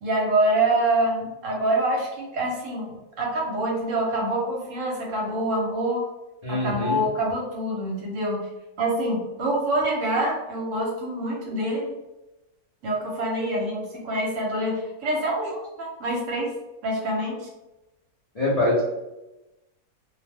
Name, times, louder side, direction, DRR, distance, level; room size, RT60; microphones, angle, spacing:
voice 1, 0.0-6.0 6.5-8.5 8.8-11.9 12.8-16.5 16.8-17.5, right 1 dB, 65° right, -2 dB, 1.0 m, -26 dB
voice 2, 6.4-7.0 18.3-18.8, left 2 dB, 75° left, -7 dB, 0.3 m, -23 dB
2.5 x 2.1 x 3.3 m, 0.99 s
omnidirectional pair, 1.6 m